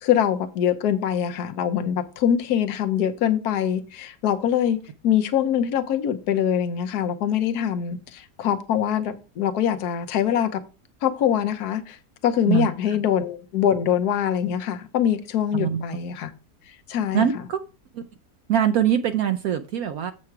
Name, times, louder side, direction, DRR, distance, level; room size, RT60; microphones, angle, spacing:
voice 1, 0.0-4.8 5.0-10.6 11.0-12.0 12.2-16.3 16.9-17.3, left 9 dB, 70° left, 1.4 m, -23 dB
voice 2, 12.5-13.0 15.5-15.8 17.1-17.6 17.9-18.0 18.5-20.1, right 9 dB, 70° right, 1.0 m, -23 dB
7.7 x 5.8 x 4.6 m
omnidirectional pair, 1.7 m